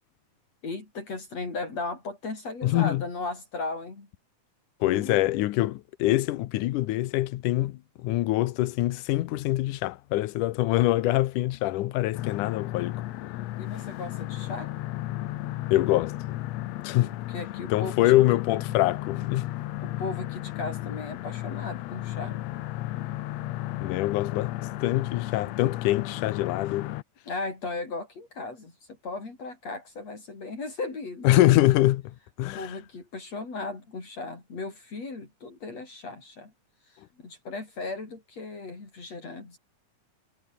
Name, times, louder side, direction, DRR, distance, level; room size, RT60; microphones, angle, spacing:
voice 1, 0.6-4.1 4.8-5.2 13.6-14.7 17.3-18.1 18.7-18.8 19.8-22.4 27.3-31.4 32.5-36.5 36.9-39.6, left 3 dB, 55° left, 6.8 m, -36 dB
voice 2, 2.6-3.0 4.8-13.0 15.7-16.4 16.8-17.1 17.7-19.5 23.8-26.9 31.2-32.7, left 16 dB, 90° left, 2.4 m, -24 dB
sound 1, 12.1-27.0, left 15 dB, 70° left, 1.8 m, -34 dB
omnidirectional pair, 3.5 m